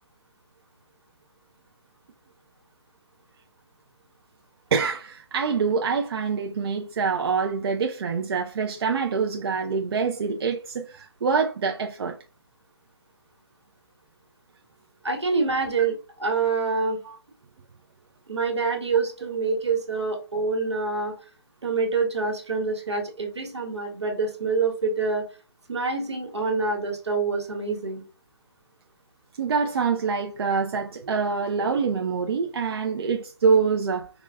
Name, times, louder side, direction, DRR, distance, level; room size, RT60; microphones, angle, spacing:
voice 1, 4.7-12.2 17.0-17.2 29.4-34.1, right 5 dB, 65° right, 0.5 m, -25 dB
voice 2, 15.0-17.0 18.3-21.1 21.6-25.2 25.7-28.0, right 4 dB, 90° right, 1.3 m, -26 dB
4.8 x 2.1 x 2.3 m
hypercardioid pair, 155°, 14 cm